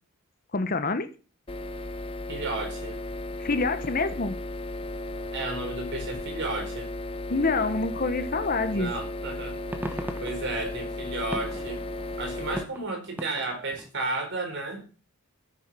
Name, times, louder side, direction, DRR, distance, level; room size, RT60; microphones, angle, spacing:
voice 1, 0.5-1.1 3.4-4.3 7.3-8.9, left 3 dB, 40° left, 1.0 m, -26 dB
sound 1, 1.5-12.6, left 1 dB, 25° left, 0.6 m, -35 dB
voice 2, 2.3-3.0 5.3-6.9 8.7-9.5 9.8-11.8 12.2-14.8, right 2 dB, 55° right, 4.2 m, -33 dB
sound 2, 9.3-13.9, equal, 10° right, 1.2 m, -40 dB
12.5 x 7.3 x 6.0 m
head